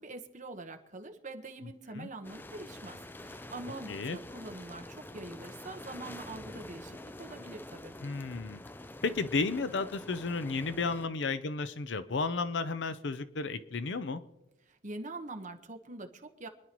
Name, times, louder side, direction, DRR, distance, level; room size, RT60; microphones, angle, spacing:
voice 1, 0.0-7.9 14.7-16.5, right 2 dB, 40° right, 5 dB, 1.3 m, -44 dB
sound 1, 2.2-11.1, left 1 dB, 10° left, 0.4 m, -47 dB
voice 2, 8.0-8.6 9.0-14.2, left 4 dB, 70° left, 12 dB, 0.6 m, -33 dB
25.5 x 11.0 x 3.0 m, 0.91 s
head